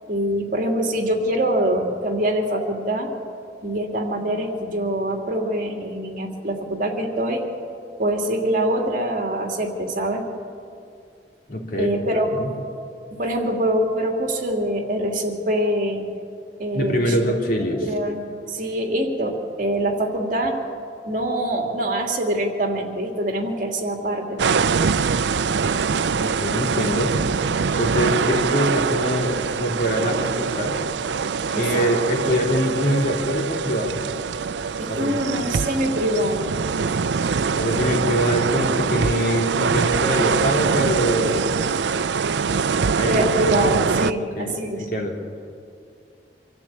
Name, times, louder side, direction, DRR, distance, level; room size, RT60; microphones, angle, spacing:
voice 1, 0.1-3.1 3.6-7.4 8.0-10.2 11.8-12.3 13.1-16.0 16.6-17.2 17.8-20.6 21.1-24.4 31.5-31.9 34.8-36.6 43.1-44.9, right 1 dB, 50° right, 2 dB, 2.7 m, -24 dB
voice 2, 11.5-11.9 12.3-12.5 16.7-17.8 26.2-27.2 27.7-30.8 31.5-34.1 34.9-35.3 37.5-41.5 43.0-43.4 44.2-45.1, equal, 55° left, 0 dB, 3.3 m, -24 dB
sound 1, 24.4-44.1, right 5 dB, 80° right, 0.5 m, -23 dB
25.5 x 13.5 x 8.7 m, 2.4 s
head